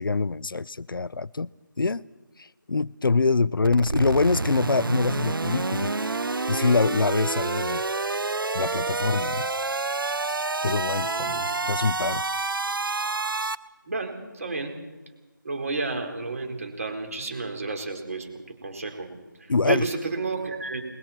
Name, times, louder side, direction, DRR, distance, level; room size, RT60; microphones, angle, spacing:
voice 1, 0.0-1.5 1.8-2.0 2.7-5.9 6.5-7.9 8.5-9.5 10.6-11.4 11.7-12.2 19.5-19.8, left 4 dB, 80° left, 0.6 m, -24 dB
sound 1, 3.6-13.6, right 3 dB, 80° right, 0.9 m, -28 dB
voice 2, 11.0-11.5 13.8-14.7 15.4-19.1 19.4-20.8, right 3 dB, 45° right, 4.5 m, -31 dB
29.5 x 21.5 x 4.5 m
figure-of-eight pair, 170°, 11 cm